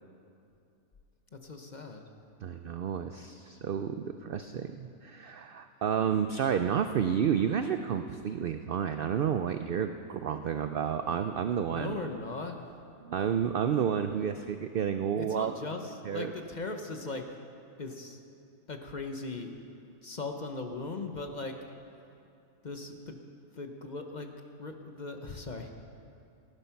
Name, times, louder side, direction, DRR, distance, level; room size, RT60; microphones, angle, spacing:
voice 1, 1.3-2.0 11.7-12.7 15.1-17.3 17.8-18.2 18.7-19.5 20.0-21.6 22.6-23.2 23.6-24.3 24.6-25.7, left 3 dB, 40° left, 5 dB, 0.8 m, -38 dB
voice 2, 2.4-12.0 13.0-15.5 16.0-16.3, right 8 dB, 70° right, 8 dB, 0.5 m, -30 dB
14.5 x 11.5 x 5.8 m, 2.6 s
omnidirectional pair, 1.4 m